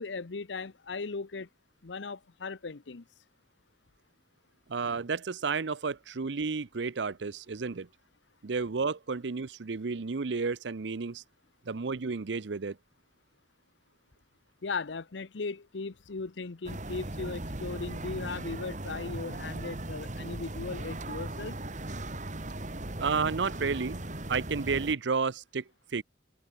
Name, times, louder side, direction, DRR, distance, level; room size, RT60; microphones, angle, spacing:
voice 1, 0.0-1.5 1.8-3.0 14.6-21.6, left 4 dB, 85° left, 0.8 m, -37 dB
voice 2, 4.7-7.9 8.4-11.2 11.7-12.8 23.0-25.6 25.9-26.0, right 4 dB, 75° right, 0.7 m, -31 dB
sound 1, 16.7-25.0, right 1 dB, 45° right, 2.6 m, -38 dB
head